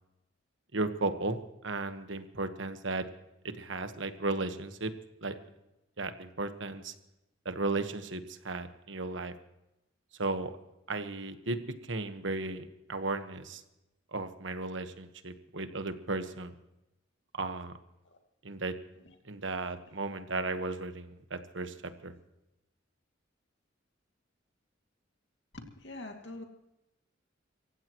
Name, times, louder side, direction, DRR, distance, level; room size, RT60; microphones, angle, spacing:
voice 1, 0.7-1.4 1.6-3.0 3.5-4.9 5.2-5.3 6.0-6.9 7.4-9.3 10.2-10.5 10.9-11.6 11.9-13.6 14.1-16.5 17.3-17.7 18.4-18.7 19.3-21.7 22.0-22.1, right 3 dB, 70° right, 9 dB, 1.4 m, -35 dB
voice 2, 25.5-26.4, left 2 dB, 60° left, 3 dB, 2.4 m, -46 dB
26.0 x 15.5 x 3.1 m, 0.91 s
head